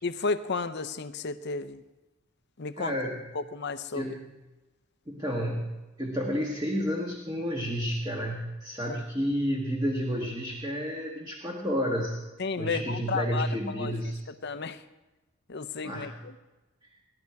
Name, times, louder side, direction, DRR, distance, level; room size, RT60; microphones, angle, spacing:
voice 1, 0.0-1.8 2.6-3.0 3.3-4.1 12.4-13.9 14.4-14.8 15.5-16.3, left 4 dB, 50° left, 11 dB, 0.7 m, -32 dB
voice 2, 2.8-3.2 3.9-4.2 5.1-12.2 12.6-14.2 15.8-16.2, equal, 20° right, -1 dB, 1.4 m, -31 dB
18.0 x 11.5 x 4.7 m, 1.1 s
head